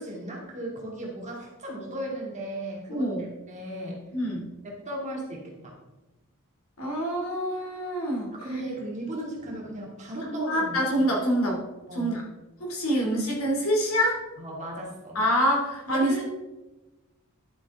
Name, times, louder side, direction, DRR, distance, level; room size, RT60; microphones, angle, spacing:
voice 1, 0.0-3.0 3.5-4.0 4.6-5.7 8.4-10.8 11.9-12.2 14.4-15.2 15.9-16.2, right 1 dB, 35° right, -2 dB, 2.3 m, -36 dB
voice 2, 2.9-3.3 4.1-4.5 6.8-8.3 10.3-11.6 11.9-12.2 12.6-14.2 15.1-16.2, equal, 70° left, 0 dB, 2.6 m, -26 dB
11.0 x 7.3 x 3.6 m, 1.1 s
head